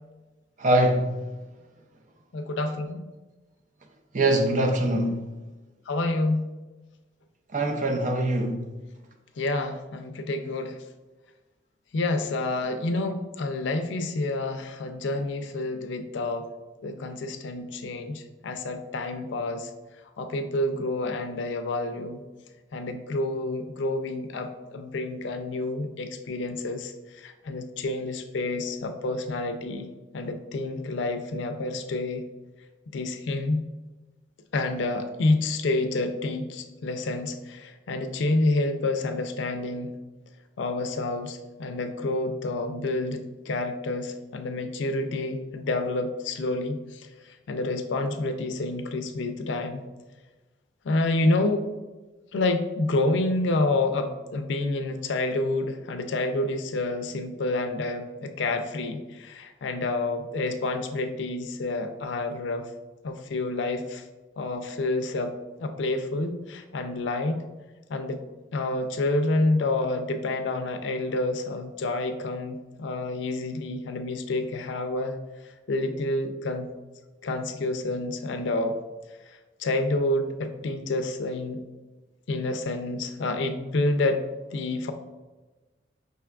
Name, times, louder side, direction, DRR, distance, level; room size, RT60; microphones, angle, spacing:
voice 1, 0.6-1.2 4.1-5.3 7.5-8.7, right 1 dB, 40° right, 0.4 m, -23 dB
voice 2, 2.3-3.1 5.9-6.5 9.4-10.8 11.9-16.5 16.8-19.7 20.2-22.2 22.7-29.9 30.1-32.2 32.9-33.6 34.5-39.9 40.6-49.8 50.8-51.7 52.3-62.7 63.0-64.0 64.4-65.3 65.6-67.4 67.9-68.2 68.5-75.2 75.7-76.7 77.2-78.7 79.6-81.6 82.3-84.3 84.5-84.9, left 2 dB, 75° left, 0.4 m, -28 dB
5.4 x 3.4 x 2.3 m
head